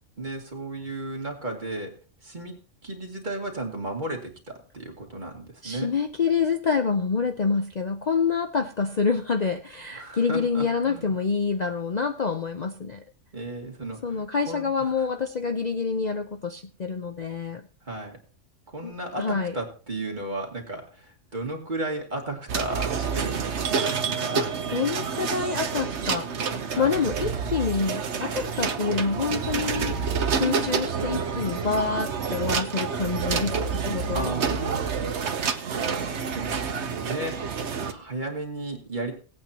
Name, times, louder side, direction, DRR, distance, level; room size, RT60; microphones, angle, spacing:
voice 1, 0.2-1.9 2.2-2.5 2.8-5.9 10.0-11.1 13.3-14.7 17.9-18.2 18.7-24.5 26.7-26.9 34.1-34.8 35.8-36.6 37.1-37.4 37.8-39.1, right 2 dB, 35° right, 1 dB, 2.4 m, -34 dB
voice 2, 5.6-13.0 14.0-17.6 18.8-18.9 19.2-19.6 24.7-30.0 30.3-34.3, left 5 dB, 40° left, 6 dB, 0.7 m, -27 dB
sound 1, 22.5-37.9, right 6 dB, 65° right, 1.2 m, -28 dB
18.5 x 8.7 x 2.9 m, 0.38 s
omnidirectional pair, 1.3 m